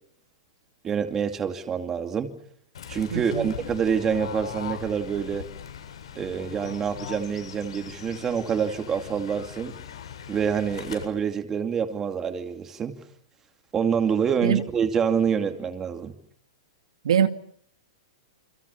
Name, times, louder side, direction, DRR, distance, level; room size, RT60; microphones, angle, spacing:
voice 1, 0.8-2.3 2.9-5.4 6.2-9.7 10.3-13.0 13.7-16.1, right 7 dB, 15° right, 2.5 m, -26 dB
Fowl / Bird, 2.7-11.0, left 8 dB, 80° left, 8.0 m, -40 dB
voice 2, 3.1-3.5 14.4-14.6 17.0-17.3, right 8 dB, 80° right, 2.5 m, -22 dB
29.0 x 26.5 x 7.1 m
hypercardioid pair, 170°, 3 cm